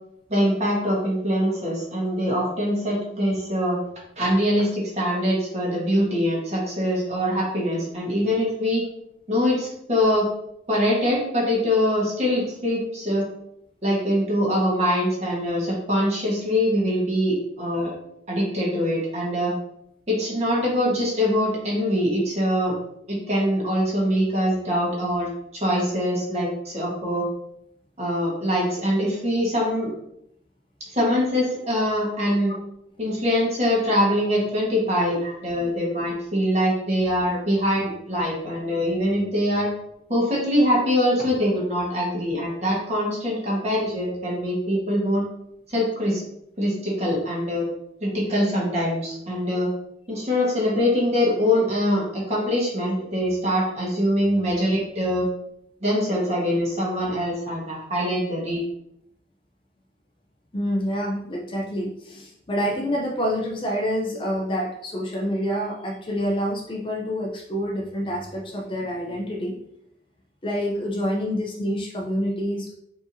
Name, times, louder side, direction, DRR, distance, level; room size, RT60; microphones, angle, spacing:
voice 1, 0.3-3.8 4.2-8.8 9.3-10.3 10.7-13.2 13.8-17.9 18.3-19.5 20.1-22.7 23.1-25.3 25.6-27.2 28.0-29.9 30.9-32.5 33.0-39.7 40.1-45.2 45.7-46.2 46.6-47.7 48.0-49.7 50.1-55.3 55.8-58.6, equal, 35° right, -4 dB, 1.3 m, -23 dB
voice 2, 60.5-69.6 70.4-72.8, equal, 25° left, -1 dB, 0.5 m, -27 dB
4.7 x 2.9 x 2.6 m, 0.76 s
head